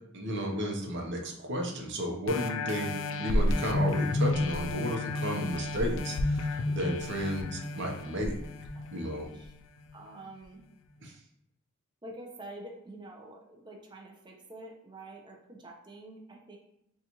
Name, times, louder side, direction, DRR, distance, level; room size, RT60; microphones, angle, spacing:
voice 1, 0.1-2.9 3.2-8.3 8.9-9.3 11.0-11.1, equal, 60° right, 1 dB, 0.7 m, -33 dB
sound 1, 2.3-9.5 10.0-10.1, left 2 dB, 70° left, 0.4 m, -31 dB
voice 2, 8.7-9.5 9.9-10.6 12.0-16.6, right 1 dB, 20° right, 1 dB, 0.6 m, -47 dB
4.1 x 2.4 x 2.9 m, 0.78 s
head